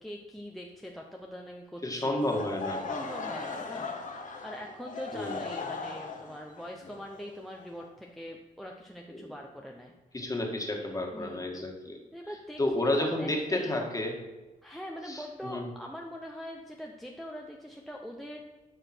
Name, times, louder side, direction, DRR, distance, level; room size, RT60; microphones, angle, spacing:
voice 1, 0.0-2.2 2.9-3.9 4.2-9.9 10.2-10.3 11.1-11.5 12.1-13.7 14.6-18.4, equal, ahead, 0 dB, 0.8 m, -43 dB
voice 2, 1.8-2.8 5.1-5.4 9.1-9.3 10.1-12.0 12.6-14.1 15.1-15.7, left 1 dB, 20° left, 1 dB, 1.8 m, -31 dB
Laughter / Crowd, 2.2-8.1, left 4 dB, 55° left, 1.2 m, -38 dB
12.0 x 5.0 x 4.5 m, 1.1 s
cardioid pair, 95°, 16 cm